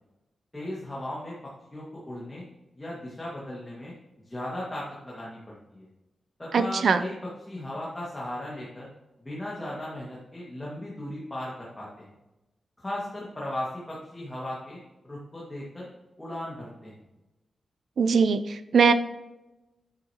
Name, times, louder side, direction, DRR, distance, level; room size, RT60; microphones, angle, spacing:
voice 1, 0.5-1.3 1.7-2.4 2.8-3.9 4.3-5.9 6.4-7.2 7.5-8.9 9.2-12.1 12.8-14.8 15.0-15.9 16.2-16.9, left 1 dB, 15° left, -6 dB, 1.9 m, -36 dB
voice 2, 6.5-7.0 18.0-18.9, right 5 dB, 60° right, 11 dB, 0.5 m, -21 dB
9.7 x 8.0 x 3.0 m, 1.0 s
wide cardioid pair, 165°, 0 cm